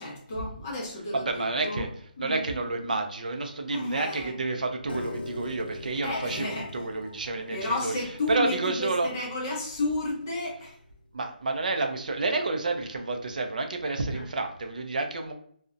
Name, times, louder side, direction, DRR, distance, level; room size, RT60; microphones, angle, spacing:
voice 1, 0.0-1.9 2.2-2.4 3.7-4.3 6.0-6.7 7.5-10.8 14.1-14.2, left 2 dB, 20° left, -3 dB, 0.5 m, -32 dB
voice 2, 1.1-1.9 2.2-8.0 8.3-9.1 11.1-15.3, right 3 dB, 55° right, 4 dB, 0.3 m, -29 dB
Piano, 4.9-11.1, left 2 dB, 90° left, 0.4 m, -42 dB
2.5 x 2.0 x 2.4 m, 0.64 s
hypercardioid pair, 175°, 5 cm